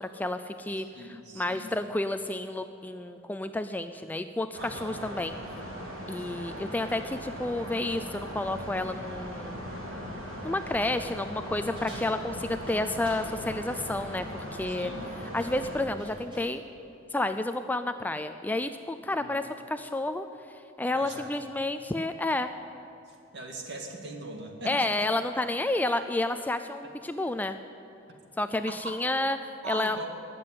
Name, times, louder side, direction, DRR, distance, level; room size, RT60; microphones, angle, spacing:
voice 1, 0.0-5.3 6.1-9.6 10.4-14.9 15.3-16.6 17.1-22.5 24.7-27.6 28.4-30.0, left 2 dB, 10° left, 9 dB, 0.3 m, -30 dB
voice 2, 0.9-1.8 4.6-5.0 14.7-15.2 19.2-19.3 20.9-21.4 23.3-24.9 28.7-29.0 29.6-30.1, right 2 dB, 55° right, 2 dB, 2.1 m, -41 dB
sound 1, 4.5-15.9, equal, 70° right, 3.9 m, -39 dB
sound 2, 11.8-13.3 14.8-15.1 15.4-16.6, equal, 25° right, 4.7 m, -50 dB
19.5 x 7.7 x 9.2 m, 2.8 s
head